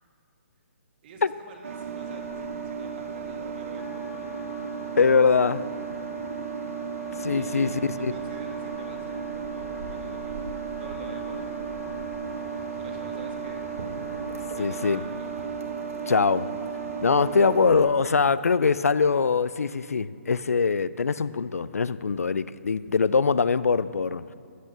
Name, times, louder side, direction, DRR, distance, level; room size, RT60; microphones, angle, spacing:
voice 1, 1.0-4.3 7.3-11.5 12.8-13.6 14.5-15.3, right 4 dB, 40° right, 2 dB, 1.9 m, -47 dB
sound 1, 1.6-17.9, right 6 dB, 70° right, 1.3 m, -34 dB
Wind instrument woodwind instrument, 3.8-15.1, left 9 dB, 20° left, 0.4 m, -50 dB
voice 2, 5.0-5.6 7.2-8.1 14.6-15.0 16.1-16.5 17.0-24.2, left 5 dB, 90° left, 17 dB, 0.4 m, -22 dB
sound 2, 6.9-14.2, right 3 dB, 10° right, 1.1 m, -53 dB
15.0 x 6.2 x 6.7 m, 2.4 s
hypercardioid pair, 145°, 8 cm